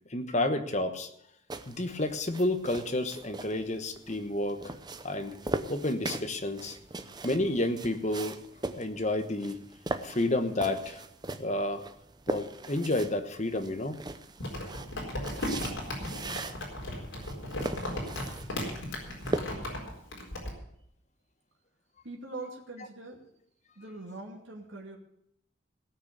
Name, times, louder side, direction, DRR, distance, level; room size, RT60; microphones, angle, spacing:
voice 1, 0.1-1.1 1.7-4.7 5.0-5.4 5.7-6.8 7.2-8.3 8.7-9.6 10.0-11.0 11.4-11.8 12.3-14.0 19.3-19.4, left 1 dB, 35° left, 7 dB, 1.3 m, -30 dB
sound 1, 1.5-19.4, right 2 dB, 20° right, 0.7 m, -40 dB
Crumpling crinkling, 14.4-20.5, left 1 dB, 70° left, 4.3 m, -36 dB
voice 2, 22.0-23.3 23.8-25.0, right 2 dB, 65° right, -1 dB, 2.6 m, -42 dB
17.5 x 6.4 x 8.2 m, 0.75 s
head